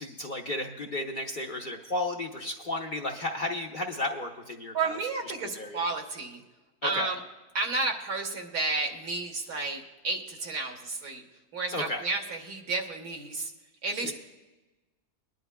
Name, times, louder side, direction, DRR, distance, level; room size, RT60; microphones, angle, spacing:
voice 1, 0.0-4.7 5.6-5.8 6.8-7.1 11.7-12.1 14.0-14.1, left 2 dB, 40° left, 1 dB, 0.8 m, -33 dB
voice 2, 4.7-6.4 6.8-7.2 7.5-11.2 11.5-13.5 13.8-14.1, right 3 dB, 75° right, 2 dB, 1.8 m, -32 dB
21.5 x 10.5 x 2.2 m, 1.1 s
omnidirectional pair, 1.6 m